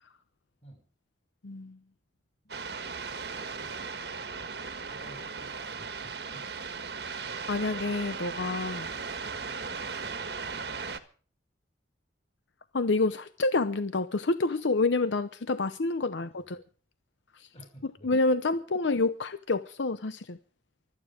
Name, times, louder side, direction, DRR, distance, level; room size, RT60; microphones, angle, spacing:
voice 1, 1.4-1.8 7.5-8.9 12.7-16.6 17.3-17.5 18.0-20.4, left 3 dB, 75° left, 0.7 m, -28 dB
sound 1, 2.5-11.0, right 5 dB, 60° right, 1.4 m, -37 dB
voice 2, 3.1-4.0 4.9-6.5 9.3-9.6 10.0-10.3 16.2-16.5 17.5-18.1 18.8-18.9, right 1 dB, 35° left, 6.9 m, -54 dB
24.5 x 9.3 x 5.0 m
head